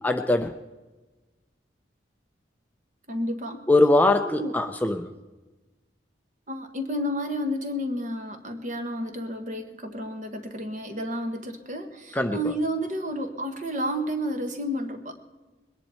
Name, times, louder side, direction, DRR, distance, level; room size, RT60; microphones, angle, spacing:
voice 1, 0.0-0.5 3.7-5.1 12.1-12.4, left 2 dB, 10° left, 6 dB, 0.5 m, -21 dB
voice 2, 3.1-3.6 4.2-4.5 6.5-15.1, equal, 40° right, 6 dB, 1.4 m, -31 dB
21.5 x 10.5 x 4.4 m, 1.2 s
head